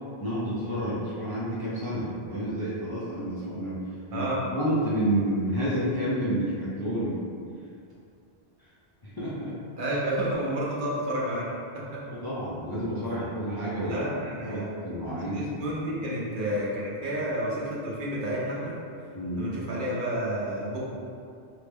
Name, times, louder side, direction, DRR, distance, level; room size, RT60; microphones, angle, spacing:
voice 1, 0.2-3.8 4.1-4.3 4.5-7.2 9.0-9.6 12.1-14.0 14.4-15.8 19.1-19.5, right 1 dB, 30° left, -10 dB, 0.4 m, -30 dB
voice 2, 9.8-11.4 11.7-12.0 13.8-14.7 15.3-18.8 19.4-20.8, right 1 dB, 60° right, -6 dB, 0.8 m, -30 dB
3.2 x 2.1 x 3.4 m, 2.5 s
omnidirectional pair, 1.1 m